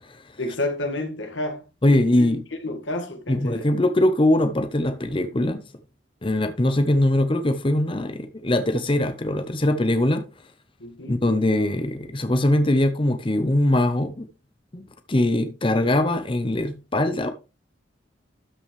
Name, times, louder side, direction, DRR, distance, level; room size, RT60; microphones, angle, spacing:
voice 1, 0.4-2.3 2.6-3.7 10.8-11.2, left 1 dB, 90° left, 2.0 m, -30 dB
voice 2, 1.8-2.4 3.3-5.6 6.2-10.2 11.1-14.3 14.7-17.3, left 1 dB, 30° left, 0.8 m, -22 dB
12.5 x 5.9 x 3.3 m
head